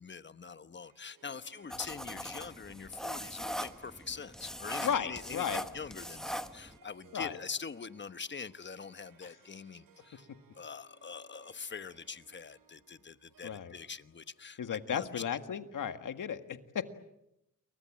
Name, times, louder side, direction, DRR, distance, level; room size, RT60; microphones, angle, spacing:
voice 1, 0.0-10.3 10.5-15.2, left 5 dB, 35° left, 12 dB, 1.1 m, -44 dB
Harp, 0.8-15.3, right 7 dB, 75° right, 4.0 m, -65 dB
sound 1, 1.7-6.8, equal, ahead, 1.4 m, -41 dB
voice 2, 4.8-5.6 7.1-7.3 9.2-9.4 13.4-13.7 14.6-16.9, left 8 dB, 65° left, 9 dB, 1.8 m, -35 dB
29.5 x 23.5 x 7.5 m, 0.87 s
cardioid pair, 95°, 33 cm